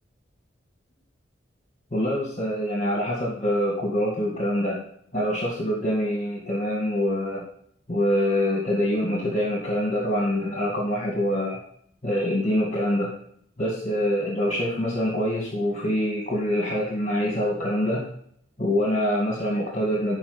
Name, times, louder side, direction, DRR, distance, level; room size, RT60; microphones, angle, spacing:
voice 1, 1.9-4.8 5.1-7.5 7.9-11.6 12.0-13.2 13.6-18.1 18.6-20.2, equal, 35° left, -1 dB, 2.1 m, -25 dB
12.0 x 5.2 x 5.1 m, 0.64 s
head